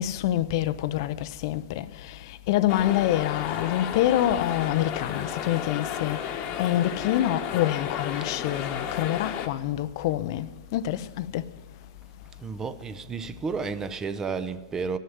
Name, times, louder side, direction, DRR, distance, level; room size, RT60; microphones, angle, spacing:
voice 1, 0.0-6.2 6.6-11.5, left 13 dB, 55° left, 0.5 m, -26 dB
sound 1, 2.7-9.5, left 8 dB, 35° left, 1.1 m, -33 dB
voice 2, 12.4-15.0, right 5 dB, 20° right, 0.7 m, -32 dB
13.5 x 6.5 x 9.2 m
hypercardioid pair, 125°, 3 cm